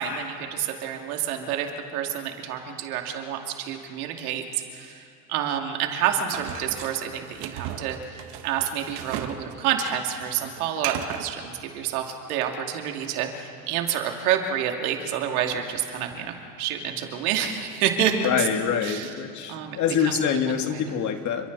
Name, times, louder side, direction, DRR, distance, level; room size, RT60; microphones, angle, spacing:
voice 1, 0.0-1.7 1.9-4.4 4.7-5.0 5.3-18.3 18.8-19.1 19.5-19.8 20.0-20.4, right 9 dB, 80° right, 3 dB, 2.7 m, -28 dB
sound 1, 6.3-9.4 9.7-11.3, right 10 dB, 65° right, 1.8 m, -35 dB
voice 2, 18.2-21.5, left 7 dB, 40° left, 6 dB, 2.0 m, -25 dB
30.0 x 24.5 x 4.1 m, 2.5 s
supercardioid pair, 125°, 43 cm